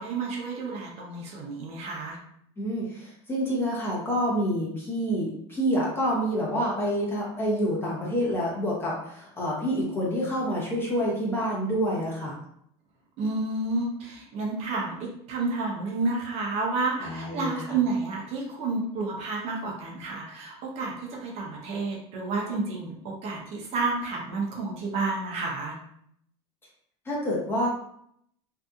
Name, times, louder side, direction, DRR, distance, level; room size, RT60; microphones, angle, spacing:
voice 1, 0.0-2.2 13.2-25.8, right 3 dB, 45° right, -1 dB, 0.7 m, -30 dB
voice 2, 2.6-12.3 17.0-17.6 27.1-27.7, equal, 15° left, -4 dB, 0.8 m, -27 dB
2.7 x 2.4 x 2.3 m, 0.71 s
cardioid pair, 145°, 14 cm